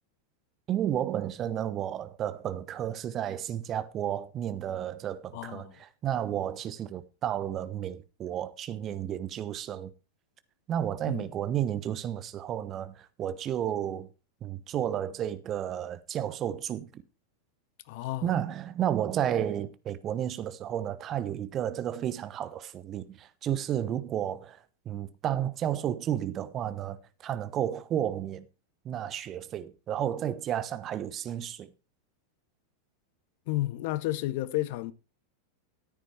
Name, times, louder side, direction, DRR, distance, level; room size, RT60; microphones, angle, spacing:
voice 1, 0.7-9.9 10.7-14.1 14.4-17.0 18.2-24.6 24.8-28.4 28.8-31.7, right 10 dB, 30° right, 1.0 m, -32 dB
voice 2, 5.3-5.7 11.1-11.3 17.9-18.3 33.5-34.9, left 16 dB, 50° left, 0.9 m, -31 dB
13.5 x 10.0 x 3.3 m
figure-of-eight pair, 90°, 0 cm